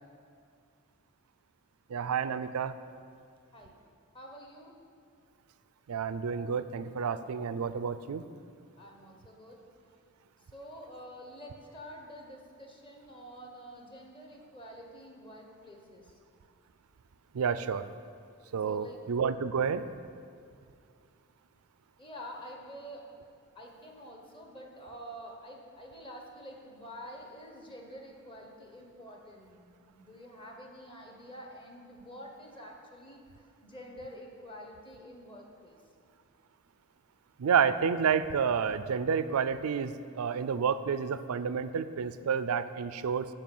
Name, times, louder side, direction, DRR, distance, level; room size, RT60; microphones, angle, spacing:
voice 1, 1.9-2.7 5.9-8.3 17.3-17.9 18.5-19.8 37.4-43.3, right 6 dB, 85° right, 13 dB, 0.4 m, -30 dB
voice 2, 4.1-4.7 8.8-9.6 10.5-16.1 18.7-19.0 22.0-23.1 23.5-33.2 33.6-35.8, equal, 25° left, 1 dB, 1.1 m, -48 dB
11.5 x 4.4 x 7.6 m, 2.3 s
head